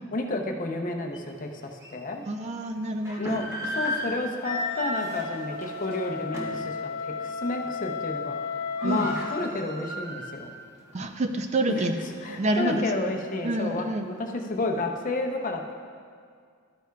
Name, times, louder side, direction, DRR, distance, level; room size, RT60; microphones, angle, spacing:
voice 1, 0.1-2.2 3.2-10.5 11.7-11.8 12.2-15.7, left 2 dB, 40° left, 3 dB, 0.7 m, -31 dB
sound 1, 1.1-1.2 1.8-1.9 2.8-6.7 7.1-7.3 7.6-8.0 8.3-8.4 8.6-10.5 10.9-11.0 11.6-13.0, left 1 dB, 15° right, 1.2 m, -35 dB
voice 2, 2.2-3.5 8.8-9.1 10.9-12.0 12.3-12.9 13.4-14.1, right 1 dB, 35° right, 6 dB, 0.4 m, -28 dB
Wind instrument woodwind instrument, 4.4-9.5, left 5 dB, 85° left, 0.5 m, -34 dB
12.5 x 9.1 x 2.3 m, 2.1 s
head